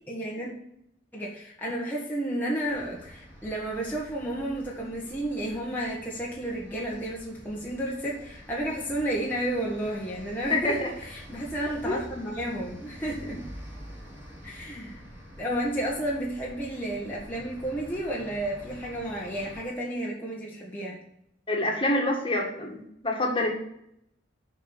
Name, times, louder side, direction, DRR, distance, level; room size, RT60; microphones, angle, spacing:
voice 1, 0.1-0.5 1.1-13.4 14.4-15.0 15.4-21.0, right 1 dB, 10° left, -5 dB, 1.6 m, -32 dB
sound 1, 2.7-19.7, equal, 10° right, 3.4 m, -47 dB
voice 2, 10.5-10.9 11.8-12.0 21.5-23.6, left 2 dB, 30° left, 0 dB, 2.0 m, -27 dB
7.5 x 5.4 x 7.0 m, 0.75 s
head